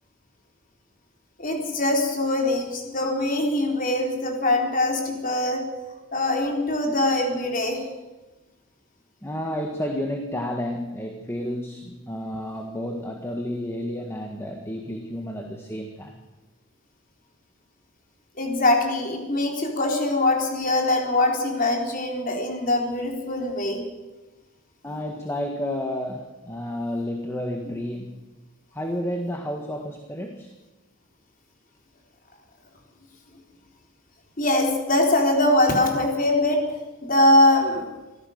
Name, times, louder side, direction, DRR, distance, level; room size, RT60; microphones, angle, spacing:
voice 1, 1.4-5.6 6.1-7.8 18.4-23.8 34.4-36.6 37.0-37.8, left 1 dB, 40° left, 1 dB, 4.0 m, -22 dB
voice 2, 9.2-16.2 24.8-28.2 28.7-30.5, left 1 dB, 10° left, 3 dB, 1.6 m, -31 dB
25.0 x 16.0 x 6.6 m, 1.1 s
head